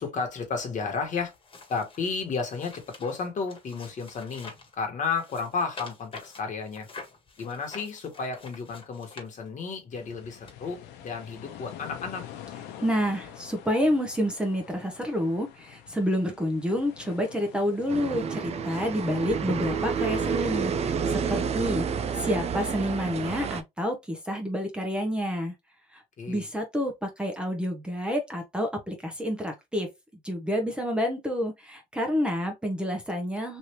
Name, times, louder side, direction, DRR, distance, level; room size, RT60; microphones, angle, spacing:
voice 1, 0.0-1.3 1.7-6.9 7.4-12.2 26.2-26.5, left 5 dB, 45° left, 1.4 m, -32 dB
sound 1, 1.2-4.7 5.1-9.8 10.5-10.6, left 3 dB, 30° left, 1.5 m, -47 dB
sound 2, 9.9-18.0, left 10 dB, 90° left, 0.8 m, -46 dB
voice 2, 12.8-25.5 25.9-29.9 30.2-33.6, equal, 5° right, 0.8 m, -29 dB
sound 3, 17.9-23.6, right 6 dB, 40° right, 0.5 m, -29 dB
3.2 x 2.7 x 3.0 m
cardioid pair, 110°, 17 cm